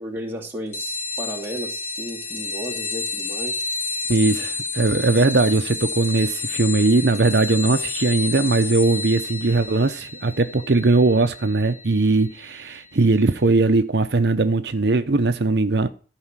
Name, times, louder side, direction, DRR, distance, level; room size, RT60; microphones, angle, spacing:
voice 1, 0.0-3.6, right 1 dB, 10° right, 2.7 m, -34 dB
sound 1, 0.7-12.8, left 4 dB, 35° left, 3.2 m, -31 dB
voice 2, 4.1-15.9, right 3 dB, 65° right, 0.7 m, -19 dB
14.5 x 4.9 x 7.4 m
head